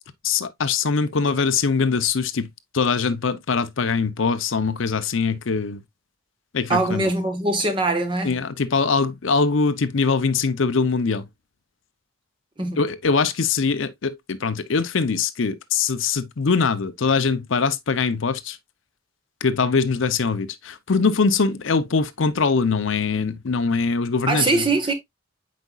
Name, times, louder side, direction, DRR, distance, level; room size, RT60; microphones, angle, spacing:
voice 1, 0.2-2.5 2.7-5.8 6.5-7.1 8.2-11.3 12.8-18.6 19.4-24.6, left 5 dB, 70° left, 0.6 m, -22 dB
voice 2, 6.7-8.4 12.6-12.8 24.3-24.9, right 2 dB, 25° right, 1.3 m, -22 dB
8.2 x 5.1 x 2.3 m
head